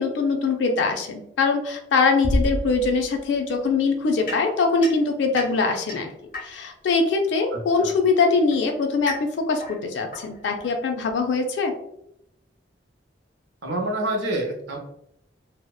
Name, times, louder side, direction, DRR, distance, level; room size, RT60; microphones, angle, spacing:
voice 1, 0.0-6.1 6.4-11.7, left 4 dB, 70° left, 4 dB, 0.4 m, -22 dB
sound 1, 2.2-3.7, equal, 35° right, 0.3 m, -26 dB
sound 2, 4.3-6.9 7.9-11.3, left 2 dB, 50° left, 0.8 m, -38 dB
voice 2, 13.6-14.8, right 1 dB, 85° right, 1 dB, 0.6 m, -27 dB
2.7 x 2.0 x 2.2 m, 0.77 s
head